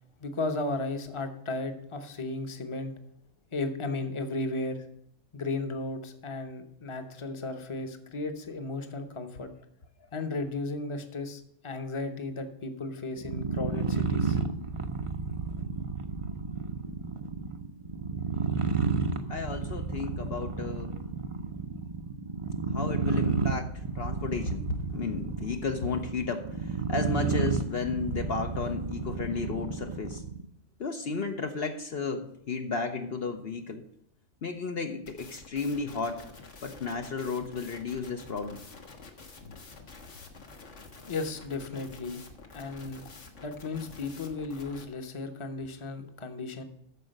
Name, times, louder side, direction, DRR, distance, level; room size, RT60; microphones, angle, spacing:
voice 1, 0.2-2.9 3.5-4.9 5.3-9.5 10.1-14.4 41.0-42.2 42.5-43.0 43.4-46.6, left 3 dB, 25° left, 7 dB, 1.0 m, -35 dB
sound 1, 13.2-30.4, right 5 dB, 35° right, 0.7 m, -31 dB
voice 2, 19.3-20.9 22.7-30.2 30.8-33.8 34.4-36.3 36.6-38.6, left 4 dB, 60° left, 5 dB, 1.0 m, -33 dB
sound 2, 35.1-44.8, left 4 dB, 85° left, 1.7 m, -48 dB
13.5 x 4.9 x 6.5 m, 0.75 s
omnidirectional pair, 1.2 m